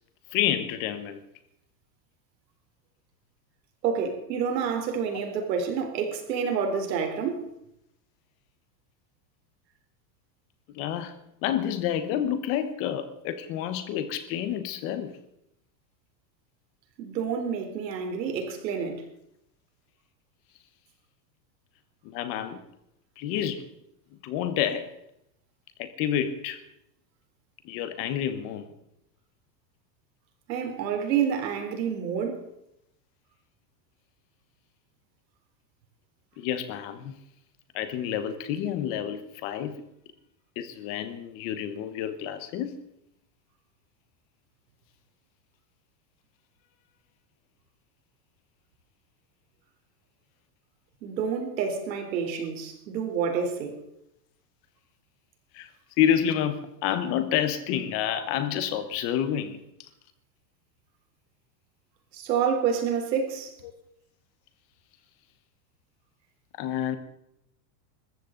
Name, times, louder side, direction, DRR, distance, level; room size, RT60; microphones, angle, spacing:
voice 1, 0.3-1.2 10.7-15.1 22.0-22.6 23.2-23.7 24.2-24.9 25.8-26.6 27.6-28.7 36.4-37.1 37.7-39.8 40.6-42.8 55.5-55.7 56.0-59.9 66.6-67.0, left 10 dB, 25° left, 1.1 m, -29 dB
voice 2, 3.8-7.5 17.0-19.1 30.5-32.5 51.0-53.8 62.1-63.5, right 7 dB, 85° right, 3.8 m, -28 dB
21.0 x 14.0 x 3.9 m
supercardioid pair, 180°, 49 cm